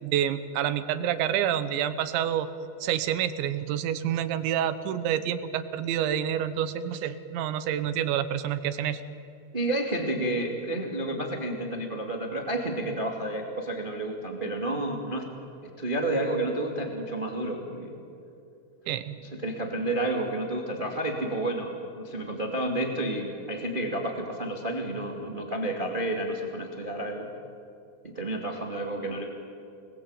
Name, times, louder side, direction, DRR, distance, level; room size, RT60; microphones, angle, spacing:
voice 1, 0.0-2.5 2.8-9.0 18.9-19.2, right 10 dB, 75° right, 11 dB, 3.2 m, -28 dB
voice 2, 9.5-15.3 15.6-18.0 19.2-27.3 28.0-29.2, right 1 dB, 20° right, 2 dB, 1.3 m, -30 dB
27.0 x 20.5 x 9.0 m, 2.7 s
omnidirectional pair, 5.6 m